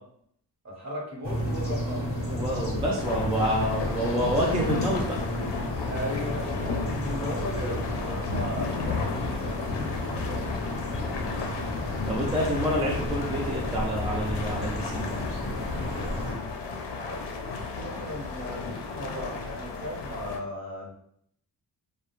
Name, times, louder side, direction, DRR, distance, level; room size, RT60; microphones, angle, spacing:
voice 1, 0.6-2.1 5.9-9.9 10.3-10.5 17.0-20.9, equal, 40° right, -2 dB, 0.9 m, -37 dB
sound 1, 1.2-16.3, left 1 dB, 30° left, 0.7 m, -32 dB
voice 2, 2.3-5.2 12.1-15.0, equal, 15° right, -3 dB, 0.3 m, -28 dB
sound 2, 3.0-20.4, left 4 dB, 70° left, 0.5 m, -34 dB
2.3 x 2.1 x 2.9 m, 0.69 s
cardioid pair, 100°, 43 cm